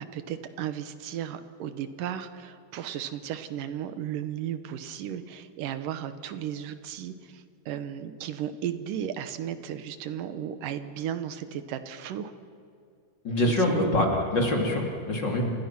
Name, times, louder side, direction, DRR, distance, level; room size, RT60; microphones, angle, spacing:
voice 1, 0.0-12.3 13.5-14.1, right 10 dB, 90° right, 10 dB, 2.8 m, -35 dB
voice 2, 13.2-15.5, left 1 dB, 35° left, 1 dB, 3.5 m, -25 dB
29.0 x 27.0 x 6.0 m, 2.5 s
omnidirectional pair, 3.7 m